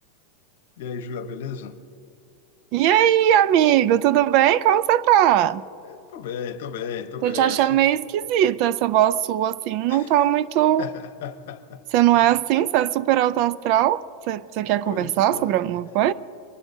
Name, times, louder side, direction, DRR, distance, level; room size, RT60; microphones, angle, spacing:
voice 1, 0.8-1.8 5.9-7.8 9.9-10.1 10.8-11.8 12.1-12.4 14.8-15.5, left 7 dB, 65° left, 1.0 m, -34 dB
voice 2, 2.7-5.6 7.2-10.9 11.9-16.1, right 12 dB, 40° right, 0.4 m, -20 dB
23.5 x 19.0 x 2.7 m
supercardioid pair, 165°, 0 cm